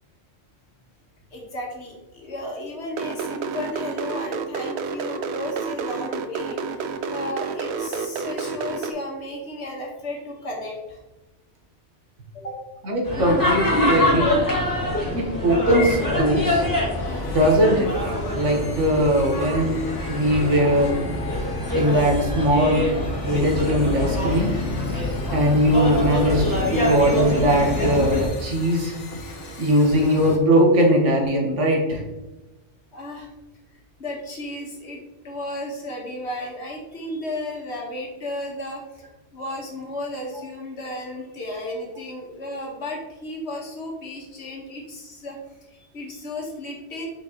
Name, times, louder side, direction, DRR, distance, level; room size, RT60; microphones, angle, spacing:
voice 1, 1.3-11.0 12.3-12.6 16.4-16.6 32.9-33.3 34.0-35.0 35.2-39.0 39.3-45.4 45.7-47.1, left 1 dB, 65° left, -1 dB, 1.7 m, -34 dB
sound 1, 2.9-8.9, right 5 dB, 65° right, 0.8 m, -29 dB
voice 2, 12.8-14.4 15.2-16.6 17.3-17.9 18.3-19.8 20.1-21.0 21.7-22.8 23.2-24.5 25.3-28.9 29.6-32.0, equal, 85° right, 1 dB, 1.6 m, -20 dB
sound 2, 13.0-28.3, left 1 dB, 15° left, 1.7 m, -25 dB
sound 3, 16.0-30.4, left 2 dB, 80° left, 1.3 m, -37 dB
6.1 x 5.3 x 3.0 m, 1.0 s
omnidirectional pair, 1.2 m